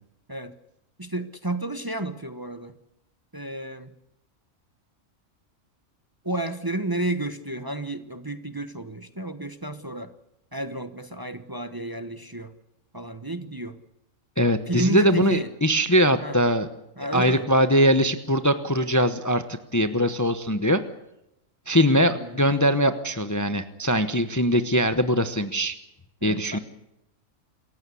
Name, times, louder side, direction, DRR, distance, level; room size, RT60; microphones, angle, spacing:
voice 1, 1.0-2.7 3.3-3.9 6.2-10.1 10.5-12.5 12.9-13.8 14.7-15.5 16.2-16.4 17.0-17.5 22.0-22.5 26.2-26.6, right 1 dB, 20° right, 9 dB, 1.0 m, -31 dB
voice 2, 14.4-16.7 17.1-19.4 19.7-20.8 21.7-25.8 26.2-26.6, equal, 15° left, 9 dB, 0.9 m, -21 dB
27.5 x 15.0 x 8.4 m, 0.86 s
omnidirectional pair, 1.4 m